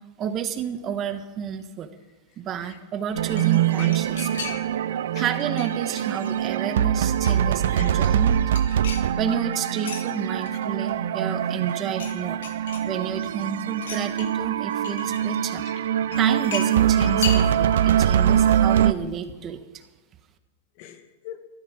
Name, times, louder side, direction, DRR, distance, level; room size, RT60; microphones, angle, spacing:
voice 1, 0.2-1.9 2.4-4.5 5.1-8.4 9.2-12.4 12.8-15.6 16.2-19.6, right 8 dB, 30° right, 8 dB, 1.5 m, -30 dB
sound 1, 3.1-4.9 5.2-6.5 6.9-7.6 7.9-10.0 10.4-11.3 11.6-12.2 12.4-13.3 13.8-15.3 16.1-17.9 18.1-18.2, left 6 dB, 80° left, 2.3 m, -37 dB
sound 2, 3.1-18.9, right 9 dB, 80° right, 0.6 m, -23 dB
voice 2, 15.6-16.2 20.8-21.5, left 10 dB, 55° left, 7 dB, 1.8 m, -44 dB
14.0 x 11.5 x 6.4 m, 1.2 s
hypercardioid pair, 135°, 0 cm